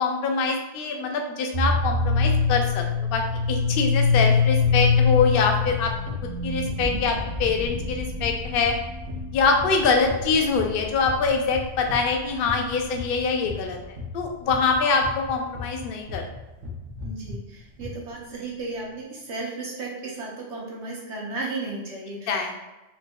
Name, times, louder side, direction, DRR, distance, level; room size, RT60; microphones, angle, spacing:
voice 1, 0.0-3.2 3.5-5.9 6.2-8.7 9.3-16.2 22.3-22.6, left 4 dB, 60° left, 3 dB, 0.7 m, -24 dB
sound 1, 1.5-12.8, left 5 dB, 55° right, 0.5 m, -24 dB
sound 2, 4.1-16.4 16.6-17.4 17.8-17.9, left 3 dB, 90° right, 1.1 m, -37 dB
voice 2, 17.0-22.6, right 3 dB, 70° right, -3 dB, 1.2 m, -34 dB
4.0 x 2.6 x 2.2 m, 1.1 s
omnidirectional pair, 1.2 m